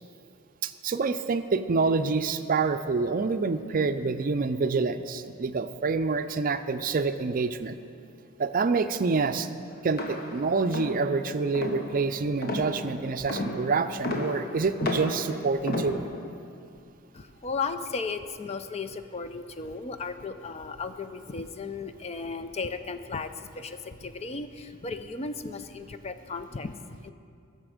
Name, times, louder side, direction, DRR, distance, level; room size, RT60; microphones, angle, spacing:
voice 1, 0.6-7.7 8.4-9.5 9.8-16.0, right 4 dB, 45° right, 10 dB, 0.5 m, -27 dB
sound 1, 9.9-16.4, left 1 dB, 50° left, 1.2 m, -34 dB
voice 2, 17.1-27.1, left 4 dB, 30° left, 10 dB, 0.5 m, -35 dB
20.0 x 6.8 x 5.0 m, 2.4 s
head